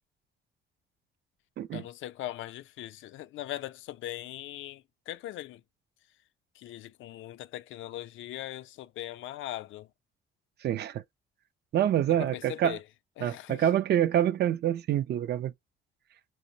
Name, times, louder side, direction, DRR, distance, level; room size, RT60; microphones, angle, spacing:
voice 1, 1.7-5.6 6.5-9.9 12.1-12.8 13.2-13.7, left 14 dB, 75° left, 0.4 m, -40 dB
voice 2, 10.6-11.0 11.7-12.8 13.2-15.5, right 10 dB, 55° right, 0.4 m, -26 dB
5.0 x 2.0 x 2.6 m
cardioid pair, 90°, 20 cm